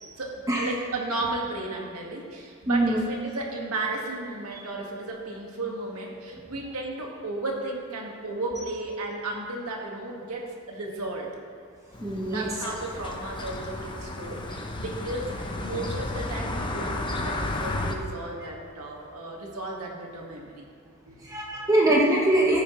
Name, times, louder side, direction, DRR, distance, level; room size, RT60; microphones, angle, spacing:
voice 1, 0.2-11.3 12.2-20.7 21.1-21.2, right 2 dB, 80° right, -1 dB, 1.9 m, -34 dB
voice 2, 2.7-3.0 4.5-4.6 12.0-12.5 21.2-22.6, right 1 dB, 15° right, -3 dB, 1.1 m, -23 dB
sound 1, 11.9-17.9, left 2 dB, 20° left, 0.7 m, -33 dB
14.0 x 9.7 x 3.2 m, 2.3 s
head